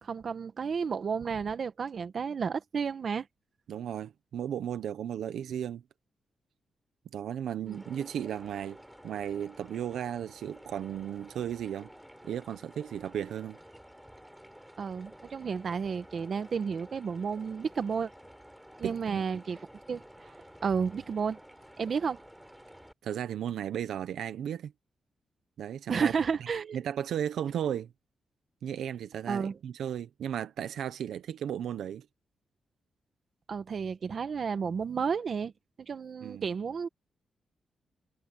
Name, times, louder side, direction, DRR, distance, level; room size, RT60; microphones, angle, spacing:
voice 1, 0.0-3.3 7.6-7.8 14.8-18.1 18.8-19.6 19.9-20.0 20.6-21.4 21.8-22.2 25.9-26.8 29.3-29.6 33.5-35.5 35.8-36.9, right 6 dB, 55° right, 1.4 m, -32 dB
voice 2, 3.7-5.8 7.1-11.9 12.2-13.6 18.8-19.4 23.0-24.7 25.6-26.1 26.7-27.9 28.6-32.0 36.2-36.4, right 9 dB, 90° right, 1.1 m, -35 dB
sound 1, 7.7-22.9, equal, 5° right, 3.8 m, -52 dB
cardioid pair, 95°, 0 cm